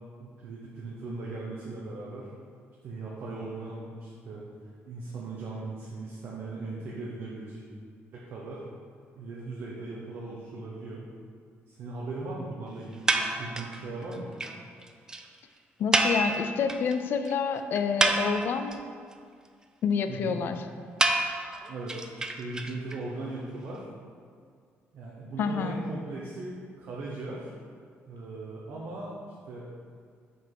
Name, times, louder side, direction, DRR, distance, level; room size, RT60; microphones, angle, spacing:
voice 1, 0.2-2.3 2.8-4.4 4.8-7.6 8.1-8.6 9.1-11.0 11.7-14.3 20.1-20.4 21.7-22.1 22.4-23.9 24.9-27.5 28.1-29.1 29.5-29.7, right 2 dB, 55° right, -4 dB, 1.0 m, -38 dB
sound 1, 13.1-13.8 14.1-14.2 14.4-14.5 14.8-14.9 15.1-15.2 15.9-16.9 17.3-17.4 17.8-18.7 21.0-23.0, right 2 dB, 15° right, 0.3 m, -27 dB
voice 2, 15.8-18.8 19.8-20.6 25.4-25.8, left 6 dB, 50° left, 8 dB, 0.4 m, -28 dB
5.8 x 5.4 x 4.8 m, 2.1 s
cardioid pair, 170°, 5 cm